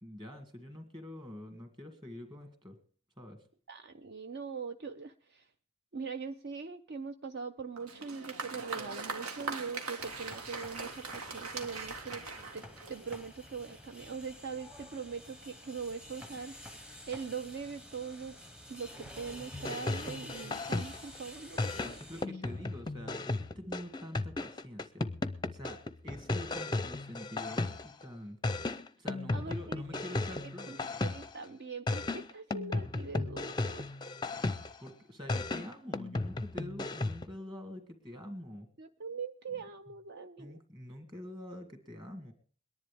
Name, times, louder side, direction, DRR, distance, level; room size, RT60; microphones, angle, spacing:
voice 1, 0.0-2.8 3.2-3.4 21.8-25.1 25.5-28.4 29.0-30.8 34.8-38.7 40.4-42.3, left 1 dB, 20° right, 5 dB, 2.2 m, -46 dB
voice 2, 3.7-5.5 5.9-12.2 12.5-12.6 12.9-16.8 17.1-18.4 18.7-21.7 29.3-30.2 30.7-33.8 38.8-40.6, right 5 dB, 50° right, 8 dB, 0.5 m, -42 dB
Applause, 7.8-13.3, right 4 dB, 90° right, 1.7 m, -41 dB
sound 1, 10.0-22.3, left 1 dB, 5° right, 0.8 m, -50 dB
sound 2, 19.5-21.2 21.6-28.0 28.4-31.5 31.9-34.9 35.3-37.3, left 2 dB, 20° left, 0.5 m, -35 dB
22.0 x 10.5 x 3.4 m, 0.41 s
head